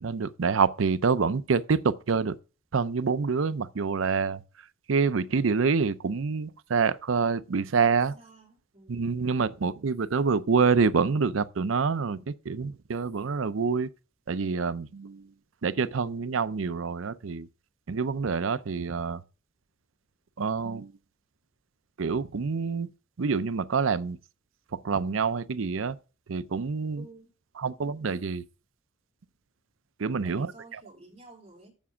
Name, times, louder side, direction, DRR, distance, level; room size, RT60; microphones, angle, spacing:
voice 1, 0.0-2.3 2.7-4.4 4.9-8.2 8.9-13.9 14.3-15.3 15.6-17.5 17.9-19.2 20.4-20.9 22.0-22.9 23.2-24.2 24.7-26.0 26.3-27.1 27.6-28.4 30.0-30.8, right 5 dB, 75° right, 0.6 m, -27 dB
voice 2, 7.9-9.1 27.0-27.3 30.2-31.7, right 2 dB, 30° right, 3.2 m, -51 dB
7.3 x 7.0 x 5.6 m
head